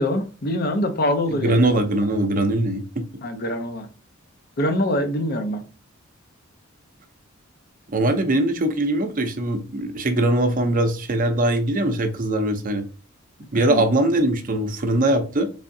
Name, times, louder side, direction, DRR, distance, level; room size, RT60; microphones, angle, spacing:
voice 1, 0.0-1.7 3.2-3.9 4.6-5.6 13.6-13.8, left 1 dB, 50° left, 0.6 m, -24 dB
voice 2, 1.3-3.0 7.9-12.9 13.5-15.5, right 1 dB, 40° right, 0.6 m, -21 dB
3.6 x 3.3 x 2.6 m
head